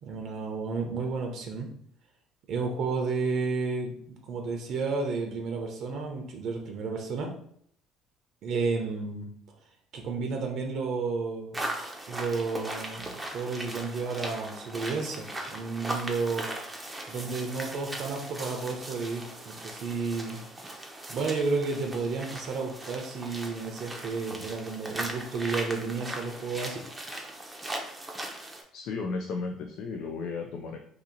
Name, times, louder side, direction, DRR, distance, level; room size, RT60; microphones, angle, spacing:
voice 1, 0.0-1.7 2.5-4.0 4.2-7.3 8.4-9.3 9.9-11.6 12.1-16.5 17.1-20.4 21.1-26.8, right 4 dB, 55° right, 2 dB, 0.7 m, -32 dB
sound 1, 11.5-28.6, right 1 dB, 10° right, 0.6 m, -39 dB
voice 2, 28.7-30.8, left 4 dB, 70° left, 3 dB, 0.4 m, -34 dB
2.8 x 2.6 x 3.9 m, 0.66 s
cardioid pair, 115°, 0 cm